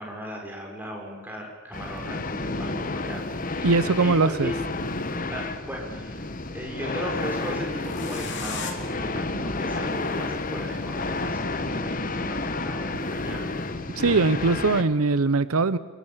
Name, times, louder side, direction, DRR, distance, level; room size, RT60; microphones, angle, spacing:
voice 1, 0.0-4.5 5.3-6.2 6.5-13.4, equal, 10° right, -1 dB, 6.0 m, -37 dB
sound 1, 1.7-14.8, left 2 dB, 40° left, 1.3 m, -31 dB
sound 2, 2.5-2.6 3.8-4.9 7.7-8.7, left 6 dB, 55° left, 3.2 m, -37 dB
voice 2, 3.6-4.5 14.0-15.8, right 3 dB, 85° right, 15 dB, 0.8 m, -21 dB
27.5 x 23.0 x 7.3 m, 1.4 s
head